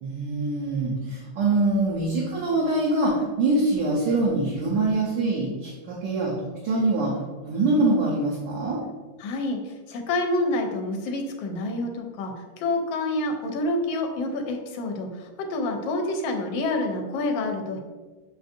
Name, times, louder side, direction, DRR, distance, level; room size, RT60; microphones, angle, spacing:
voice 1, 0.0-6.3 6.6-7.1 7.4-8.8, right 2 dB, 70° right, -6 dB, 1.4 m, -24 dB
voice 2, 9.2-17.8, left 2 dB, 75° left, 3 dB, 1.3 m, -28 dB
6.4 x 2.5 x 2.5 m, 1.3 s
omnidirectional pair, 2.1 m